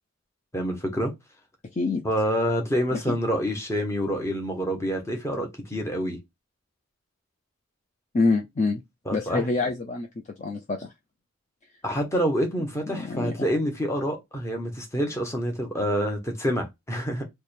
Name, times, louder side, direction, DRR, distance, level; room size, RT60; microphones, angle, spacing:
voice 1, 0.5-1.1 2.0-6.2 9.1-9.5 11.8-17.2, equal, 15° left, 0.8 m, -27 dB
voice 2, 1.7-2.1 2.9-3.2 8.1-8.8 9.1-10.1 10.4-10.9 12.9-13.5, left 3 dB, 35° left, 0.4 m, -26 dB
3.4 x 2.1 x 4.2 m
head